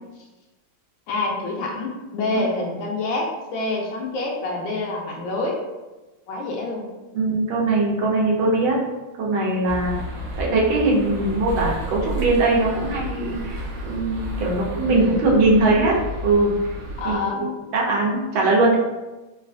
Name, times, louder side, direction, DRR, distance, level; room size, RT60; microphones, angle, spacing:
voice 1, 1.1-5.6 6.3-6.8 14.8-15.3 17.0-17.6, left 2 dB, 75° left, -1 dB, 1.3 m, -27 dB
voice 2, 7.1-8.8 9.2-10.0 10.4-16.0 16.2-16.5 17.0-18.8, right 2 dB, 90° right, -3 dB, 1.5 m, -21 dB
Holborn - Holborn Circus ambience, 9.7-17.1, equal, 65° right, 1.2 m, -31 dB
4.0 x 2.2 x 2.5 m, 1.1 s
omnidirectional pair, 2.2 m